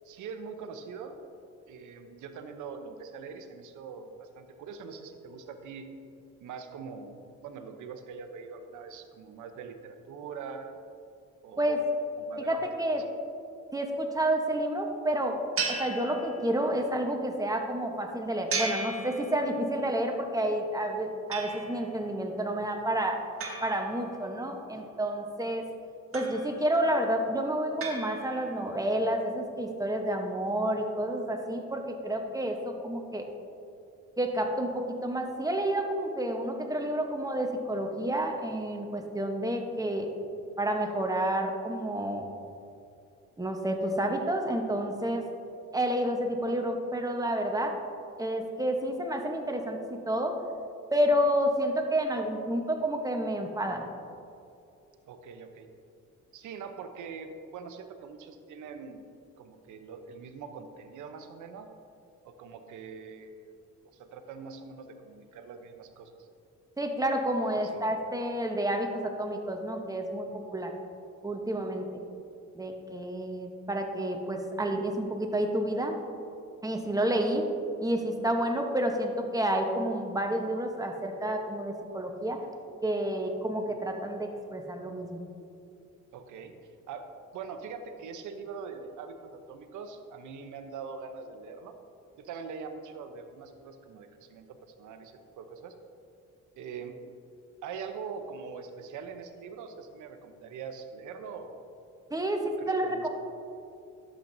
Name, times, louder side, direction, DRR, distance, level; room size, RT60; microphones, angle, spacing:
voice 1, 0.0-1.2 1.7-5.9 6.4-10.8 11.4-11.8 12.2-12.7 55.1-55.7 56.3-59.1 59.4-61.7 62.2-63.5 63.9-66.3 67.6-67.8 86.1-86.5 86.9-87.1 87.3-91.7 92.2-94.5 94.8-95.7 96.6-97.0 97.6-101.6 102.2-103.1, right 5 dB, 80° right, 7 dB, 0.8 m, -43 dB
voice 2, 12.5-13.0 13.7-15.4 15.7-23.2 23.6-25.6 26.1-33.3 34.2-40.1 40.6-42.3 43.4-45.2 45.7-47.8 48.2-50.3 50.9-53.9 66.8-70.7 71.2-72.0 72.5-76.0 76.6-77.5 77.8-82.4 82.8-85.2 102.1-103.1, right 1 dB, 10° right, 3 dB, 1.0 m, -30 dB
sound 1, 15.6-16.8 18.5-19.8 21.3-22.0 23.4-24.6 26.1-26.8 27.8-28.7, right 4 dB, 45° right, 1.5 m, -36 dB
11.5 x 7.5 x 2.7 m, 2.6 s
cardioid pair, 90°, 30 cm